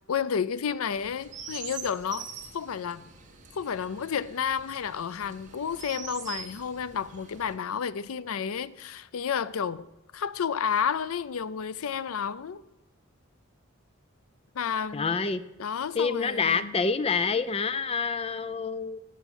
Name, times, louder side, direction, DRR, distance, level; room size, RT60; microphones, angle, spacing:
voice 1, 0.1-2.3 2.5-3.1 3.5-9.8 10.1-12.6 14.5-15.2 15.6-16.7, left 7 dB, 85° left, 0.5 m, -31 dB
Chirp tweet, 0.9-7.5, right 6 dB, 35° right, 1.7 m, -44 dB
voice 2, 14.9-15.4 15.9-19.0, left 5 dB, 25° left, 0.5 m, -27 dB
11.0 x 7.8 x 8.2 m
head